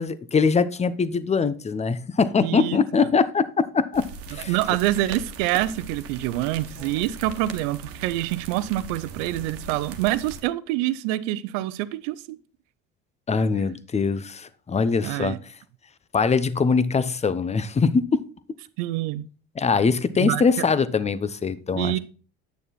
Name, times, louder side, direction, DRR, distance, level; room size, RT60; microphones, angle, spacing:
voice 1, 0.0-4.5 13.3-15.4 16.1-18.2 19.6-22.0, left 5 dB, 20° left, 0.8 m, -22 dB
voice 2, 2.4-2.8 4.3-12.4 15.0-15.4 18.8-19.3 20.2-20.6 21.7-22.0, right 15 dB, 80° right, 0.7 m, -26 dB
sound 1, 3.9-10.4, right 4 dB, 50° right, 1.4 m, -39 dB
9.3 x 6.7 x 4.1 m
supercardioid pair, 80°, 29 cm